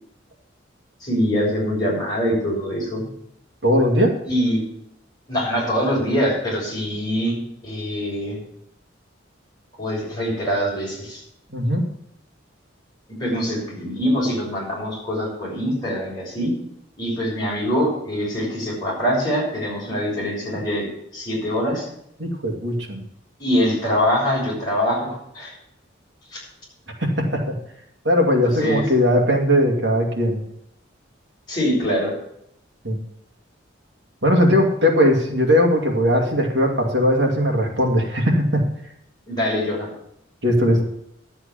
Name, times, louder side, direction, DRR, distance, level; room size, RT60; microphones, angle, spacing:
voice 1, 1.0-3.0 4.3-4.6 5.3-7.4 7.6-8.4 9.8-11.2 13.2-16.5 17.0-21.9 23.4-25.5 26.3-26.4 28.4-28.9 31.5-32.1 39.3-39.9, equal, 20° left, -5 dB, 6.5 m, -23 dB
voice 2, 3.6-4.2 11.5-11.8 22.2-23.0 27.0-27.5 28.0-30.4 32.8-33.0 34.2-38.6 40.4-40.8, equal, 60° right, 2 dB, 2.3 m, -19 dB
11.5 x 8.0 x 7.1 m, 0.75 s
head